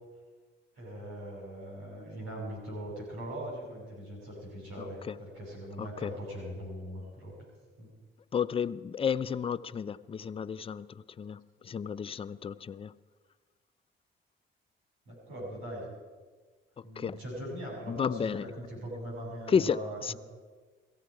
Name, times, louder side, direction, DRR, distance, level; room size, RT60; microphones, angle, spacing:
voice 1, 0.8-7.3 7.8-7.9 15.1-15.9 16.8-20.2, equal, 90° right, 6.7 m, -41 dB
voice 2, 4.8-5.2 5.8-6.1 8.3-12.9 16.8-17.2 17.9-18.5 19.5-20.1, left 7 dB, 30° left, 0.4 m, -32 dB
17.5 x 15.0 x 4.8 m
cardioid pair, 90°, 20 cm